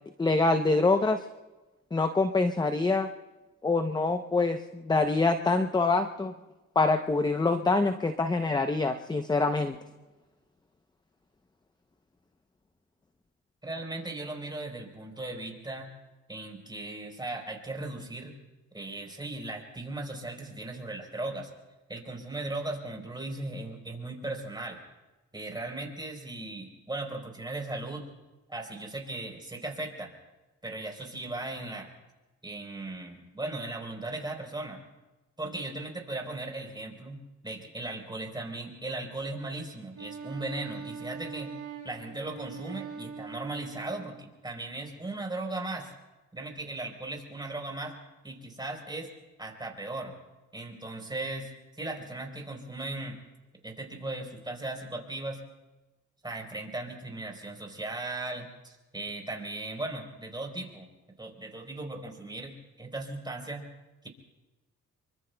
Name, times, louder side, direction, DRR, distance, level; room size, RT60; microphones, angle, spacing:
voice 1, 0.2-1.3 1.9-3.1 3.6-6.3 6.8-9.8, left 3 dB, 15° left, 8 dB, 0.7 m, -25 dB
voice 2, 13.6-15.9 16.3-18.3 18.7-21.5 21.9-24.8 25.3-28.1 28.5-30.1 30.6-31.9 32.4-34.8 35.4-41.5 41.8-45.9 46.3-48.0 48.2-49.1 49.4-50.1 50.5-51.5 51.8-53.2 53.6-55.4 56.2-60.9 61.2-63.7, right 2 dB, 15° right, 1 dB, 3.9 m, -37 dB
Wind instrument woodwind instrument, 39.9-44.3, right 5 dB, 50° right, 6.2 m, -42 dB
26.5 x 23.5 x 2.3 m, 1.1 s
cardioid pair, 90°, 30 cm